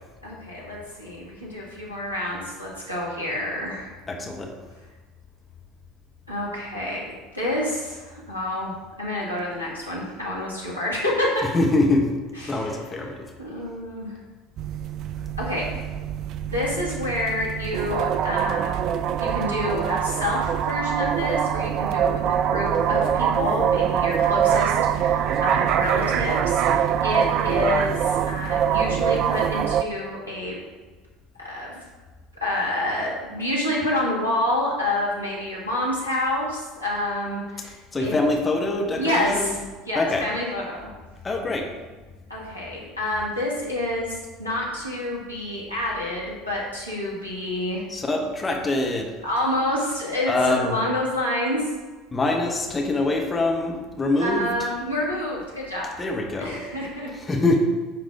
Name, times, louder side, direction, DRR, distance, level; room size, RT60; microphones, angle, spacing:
voice 1, 0.2-3.9 6.3-7.0 7.3-8.7 9.0-11.5 12.3-14.2 15.4-15.7 16.4-18.8 19.2-30.6 31.4-31.8 32.4-38.1 38.9-39.6 39.9-40.9 42.3-47.8 49.2-51.6 54.2-55.9 56.4-57.1, left 1 dB, 90° left, -6 dB, 1.8 m, -28 dB
voice 2, 4.1-4.5 11.5-12.0 12.5-13.2 37.9-39.5 39.9-40.2 41.2-41.7 47.9-49.1 50.3-50.8 52.1-54.5 56.0-56.6 57.3-57.6, left 2 dB, 20° left, 1 dB, 1.2 m, -24 dB
sound 1, 14.6-29.8, right 9 dB, 45° right, 0.4 m, -24 dB
10.0 x 4.0 x 4.8 m, 1.3 s
figure-of-eight pair, 65°, 0 cm